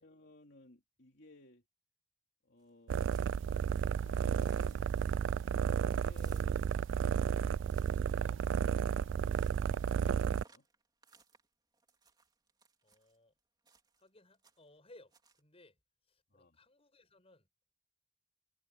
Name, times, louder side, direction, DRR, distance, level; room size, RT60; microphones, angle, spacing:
voice 1, 0.0-1.6 2.4-3.2 3.5-7.4 7.8-10.7 16.3-16.6, left 2 dB, 60° left, 3.4 m, -60 dB
sound 1, 2.6-4.0 4.3-13.2 13.6-14.1 14.3-14.8 15.1-15.4, right 5 dB, 20° right, 3.4 m, -67 dB
sound 2, 2.9-10.4, right 7 dB, 70° right, 0.3 m, -32 dB
voice 2, 12.8-13.3 14.0-15.8 16.1-17.5, left 2 dB, 30° left, 7.6 m, -62 dB
head